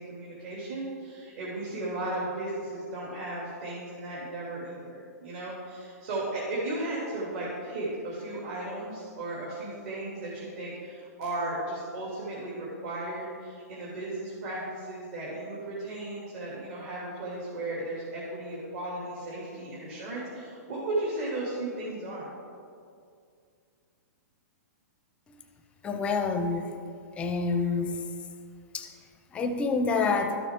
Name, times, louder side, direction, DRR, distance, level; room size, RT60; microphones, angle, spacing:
voice 1, 0.0-22.3, right 2 dB, 50° right, -7 dB, 2.6 m, -35 dB
voice 2, 25.8-26.8 27.2-28.0 28.7-28.9 29.3-30.4, left 4 dB, 15° left, 6 dB, 0.5 m, -27 dB
12.5 x 6.9 x 3.7 m, 2.3 s
hypercardioid pair, 160°, 9 cm